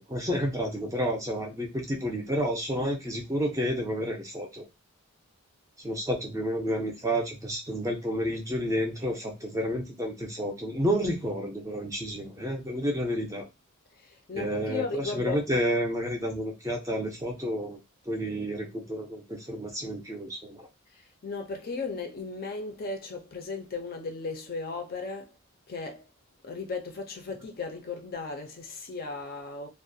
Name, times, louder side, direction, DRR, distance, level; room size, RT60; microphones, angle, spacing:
voice 1, 0.0-4.6 5.8-13.5 14.3-17.8 18.1-20.7, equal, 15° right, 0.5 m, -30 dB
voice 2, 13.9-15.4 20.9-25.4 25.7-26.1 26.4-29.7, left 4 dB, 40° left, 0.4 m, -36 dB
2.4 x 2.1 x 2.6 m
head